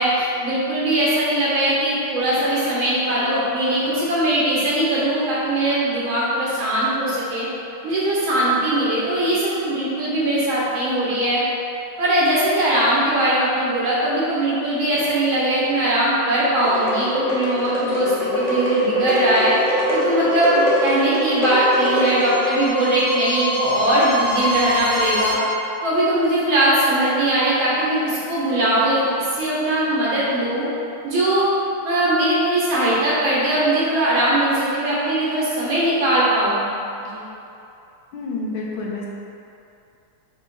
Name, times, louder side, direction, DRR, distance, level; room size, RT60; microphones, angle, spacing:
voice 1, 0.0-7.5 7.8-11.4 12.0-19.5 19.9-25.4 25.8-30.7 31.0-31.5 31.8-36.7 37.1-37.2, right 1 dB, 70° right, -7 dB, 2.1 m, -20 dB
sound 1, 16.6-22.6, left 1 dB, 30° left, 0.7 m, -23 dB
sound 2, 19.3-25.3, left 1 dB, 20° right, 1.2 m, -27 dB
voice 2, 38.1-39.1, left 3 dB, 75° left, -3 dB, 1.5 m, -28 dB
5.5 x 3.3 x 5.3 m, 2.7 s
omnidirectional pair, 2.3 m